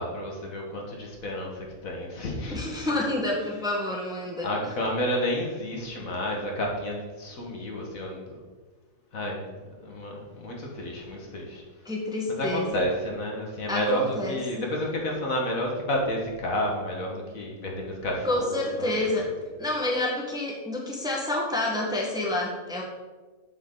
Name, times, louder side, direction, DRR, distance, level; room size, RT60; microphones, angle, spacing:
voice 1, 0.0-3.0 4.4-8.4 9.1-9.4 9.8-11.6 12.3-19.1, equal, 65° left, -1 dB, 1.9 m, -31 dB
voice 2, 2.5-4.7 11.8-12.8 13.7-14.4 18.2-19.3 19.6-22.8, left 1 dB, 5° right, -2 dB, 1.3 m, -28 dB
7.8 x 7.4 x 3.9 m, 1.3 s
omnidirectional pair, 1.6 m